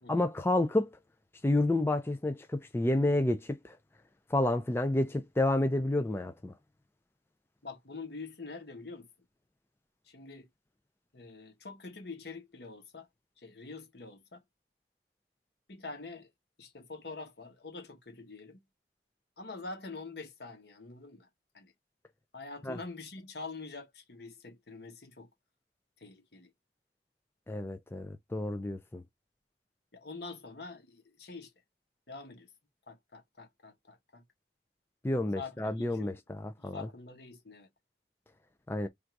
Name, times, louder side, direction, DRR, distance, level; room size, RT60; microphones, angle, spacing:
voice 1, 0.1-0.9 1.4-3.7 4.3-6.5 22.7-22.8 27.5-29.0 35.0-36.8 38.7-38.9, left 1 dB, 15° left, 0.3 m, -30 dB
voice 2, 7.6-9.1 10.1-10.5 11.1-13.1 13.4-14.4 15.7-16.3 16.6-18.6 19.4-21.3 21.5-21.7 22.3-25.3 26.0-26.5 29.9-31.5 32.1-32.5 32.9-34.2 35.4-36.2 36.6-37.7, left 3 dB, 65° left, 1.2 m, -45 dB
3.5 x 2.6 x 4.5 m
head